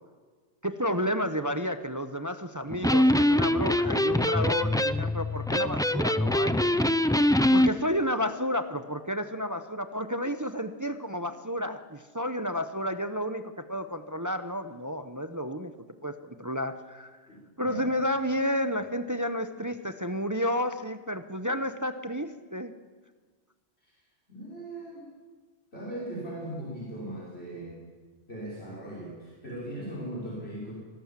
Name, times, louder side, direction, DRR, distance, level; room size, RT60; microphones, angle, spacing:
voice 1, 0.6-6.7 7.5-15.7 16.0-17.2 17.6-22.7, equal, 20° right, 9 dB, 0.8 m, -31 dB
Electric guitar, 2.7-7.7, left 1 dB, 5° left, 0.4 m, -23 dB
voice 2, 17.3-17.9 23.8-24.0 24.3-25.1 25.7-27.8 28.3-30.7, right 1 dB, 65° left, -5 dB, 6.0 m, -39 dB
25.5 x 17.5 x 7.5 m, 1.4 s
omnidirectional pair, 1.1 m